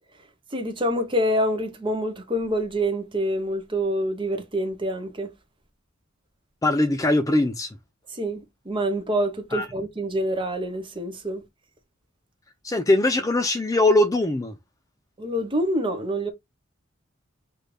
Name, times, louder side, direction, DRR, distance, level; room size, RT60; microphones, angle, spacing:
voice 1, 0.5-5.3 8.1-11.4 15.2-16.3, equal, 25° right, 0.9 m, -26 dB
voice 2, 6.6-7.7 9.5-9.7 12.6-14.6, left 2 dB, 15° left, 0.4 m, -21 dB
6.2 x 2.6 x 3.2 m
head